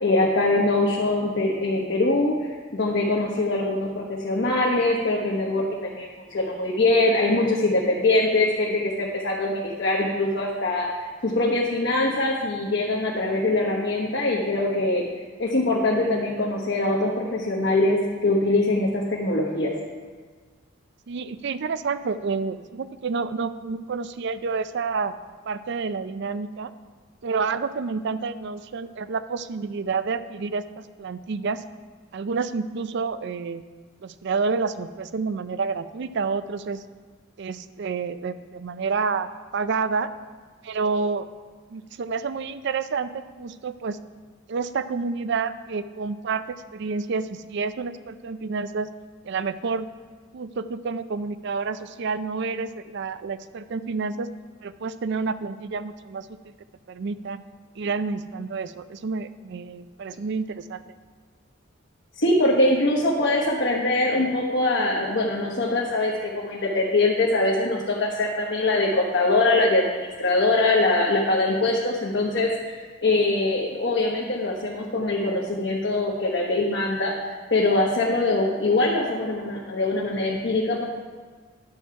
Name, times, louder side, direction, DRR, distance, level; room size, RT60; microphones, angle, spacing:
voice 1, 0.0-15.1 15.4-19.7 62.1-77.1 77.5-80.8, left 2 dB, 60° left, -3 dB, 1.2 m, -23 dB
voice 2, 21.1-25.1 25.5-26.7 27.2-31.6 32.1-33.6 34.0-36.8 37.4-40.1 40.6-41.3 41.7-44.0 44.5-46.4 46.7-48.9 49.2-49.9 50.3-54.3 54.6-56.5 56.9-57.4 57.8-60.8, right 4 dB, 60° right, 13 dB, 0.4 m, -29 dB
10.5 x 7.2 x 4.7 m, 1.5 s
head